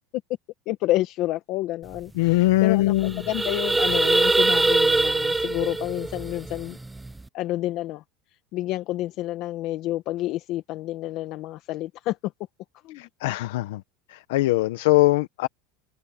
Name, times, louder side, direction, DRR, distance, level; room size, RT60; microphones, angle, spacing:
voice 1, 0.7-6.8 7.3-8.0 8.5-12.3 12.8-13.1, left 16 dB, 45° left, 1.3 m, -29 dB
sound 1, 2.0-2.1 2.3-2.5 2.9-7.2, right 2 dB, 5° right, 0.5 m, -23 dB
voice 2, 2.2-3.1 13.0-13.8 14.1-15.5, left 18 dB, 75° left, 0.9 m, -21 dB
supercardioid pair, 165°, 0 cm